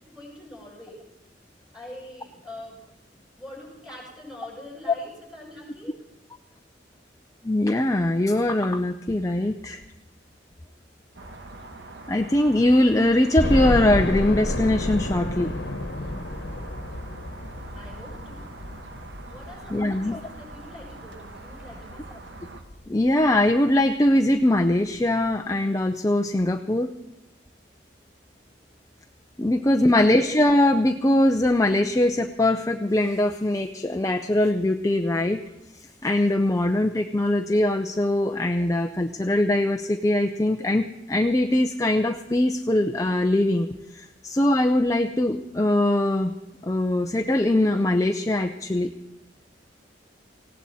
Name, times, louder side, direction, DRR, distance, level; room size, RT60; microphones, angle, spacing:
voice 1, 0.0-1.0 1.7-2.8 3.4-5.9 17.7-18.5 19.3-22.2 29.4-30.0, left 1 dB, 5° right, -4 dB, 6.5 m, -44 dB
voice 2, 7.4-9.8 12.1-15.5 19.7-20.2 22.9-26.9 29.4-35.4 36.0-43.7 44.0-46.3 46.6-48.9, left 1 dB, 20° left, 6 dB, 0.6 m, -22 dB
sound 1, 11.1-22.6, right 2 dB, 75° right, 1.4 m, -43 dB
sound 2, 13.4-22.3 22.8-22.9 23.3-23.4 24.6-24.7 24.9-25.0, left 1 dB, 70° left, 1.2 m, -31 dB
19.0 x 17.0 x 4.2 m, 0.97 s
head